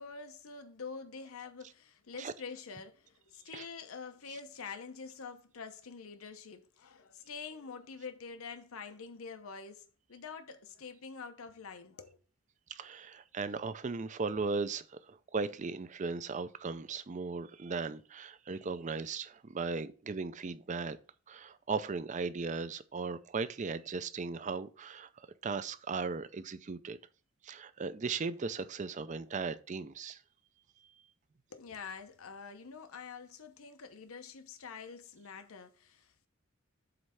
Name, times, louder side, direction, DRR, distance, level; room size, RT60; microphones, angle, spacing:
voice 1, 0.0-12.2 31.5-36.3, left 5 dB, 85° left, 0.8 m, -46 dB
voice 2, 12.7-21.0 21.3-27.0 27.4-30.2, right 4 dB, 35° right, 0.4 m, -37 dB
7.8 x 3.2 x 5.6 m
head